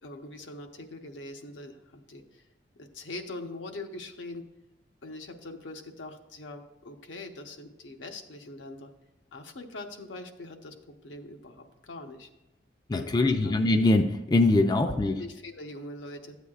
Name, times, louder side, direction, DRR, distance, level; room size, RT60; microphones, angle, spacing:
voice 1, 0.0-2.4 2.8-4.5 5.0-8.9 9.3-12.3 13.1-13.6 14.8-16.4, left 2 dB, 90° left, 4 dB, 0.9 m, -42 dB
voice 2, 12.9-15.2, left 2 dB, 20° left, 7 dB, 0.4 m, -23 dB
12.5 x 8.2 x 2.4 m, 1.0 s
head